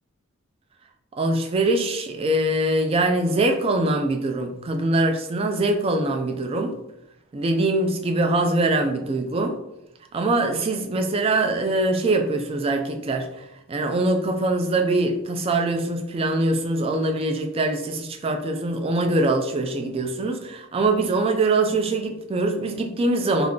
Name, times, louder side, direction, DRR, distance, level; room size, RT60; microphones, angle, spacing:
voice 1, 1.1-6.7 7.3-9.6 10.1-23.5, right 2 dB, 25° right, 5 dB, 0.3 m, -23 dB
2.4 x 2.3 x 3.6 m, 0.87 s
head